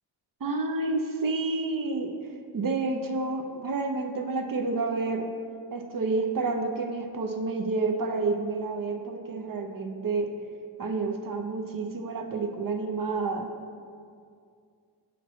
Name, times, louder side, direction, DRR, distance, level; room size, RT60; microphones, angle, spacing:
voice 1, 0.4-2.1 2.5-5.3 5.7-10.3 10.8-13.5, right 3 dB, 45° right, 4 dB, 0.7 m, -29 dB
8.2 x 5.8 x 3.1 m, 2.3 s
cardioid pair, 90°, 46 cm